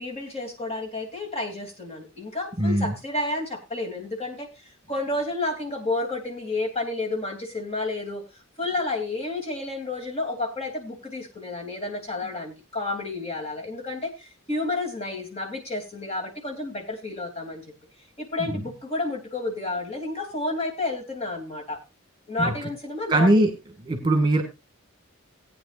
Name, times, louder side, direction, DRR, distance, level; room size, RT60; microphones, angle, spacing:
voice 1, 0.0-8.2 8.6-17.6 18.2-21.8 22.3-23.3, left 2 dB, 30° left, 1 dB, 3.0 m, -31 dB
voice 2, 2.6-2.9 18.4-18.6 22.4-22.5 23.1-23.5 23.8-24.4, right 1 dB, 20° right, 5 dB, 1.9 m, -21 dB
18.5 x 9.3 x 2.5 m, 0.24 s
head